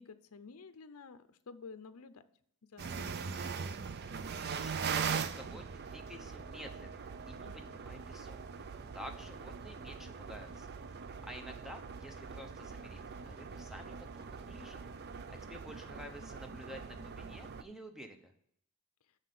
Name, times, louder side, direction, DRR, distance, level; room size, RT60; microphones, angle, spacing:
voice 1, 0.0-2.2 2.7-3.4 7.4-7.7, left 4 dB, 70° left, 11 dB, 0.6 m, -51 dB
sound 1, 2.8-17.6, right 6 dB, 45° right, 0.4 m, -41 dB
sound 2, 4.4-15.0, equal, 35° left, 1.7 m, -68 dB
voice 2, 4.4-8.4 8.9-10.7 11.1-14.8 15.2-18.3, equal, ahead, 4 dB, 0.9 m, -51 dB
6.5 x 5.8 x 6.7 m, 0.69 s
head